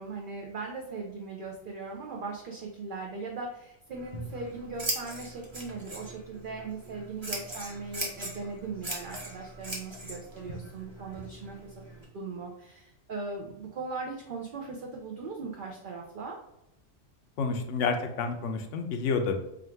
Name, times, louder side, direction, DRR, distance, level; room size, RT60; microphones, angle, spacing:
voice 1, 0.0-11.7 12.1-16.4, right 3 dB, 55° right, 0 dB, 0.6 m, -39 dB
Scissors, 3.9-12.0, right 1 dB, 25° right, 0.8 m, -40 dB
voice 2, 17.4-19.4, left 4 dB, 70° left, 6 dB, 0.9 m, -29 dB
3.6 x 2.4 x 4.4 m, 0.84 s
omnidirectional pair, 1.4 m